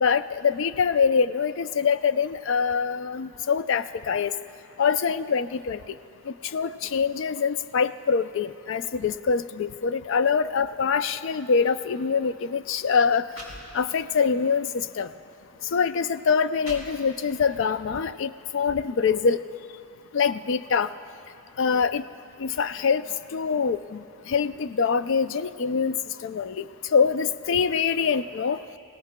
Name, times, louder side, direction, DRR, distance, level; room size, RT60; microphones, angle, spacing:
voice 1, 0.0-4.3 4.8-5.8 6.5-13.2 13.7-14.7 15.0-15.1 15.7-19.4 20.1-20.9 21.6-22.0 22.4-23.0 23.3-24.0 24.3-26.0 26.2-26.6 26.9-28.6, left 6 dB, 55° left, 13 dB, 0.3 m, -24 dB
sound 1, 12.1-12.2 12.9-13.0 13.3-14.2 14.7-14.9 15.7-15.8 16.3-17.4, equal, 85° left, 3.3 m, -43 dB
26.5 x 17.5 x 2.2 m, 2.9 s
head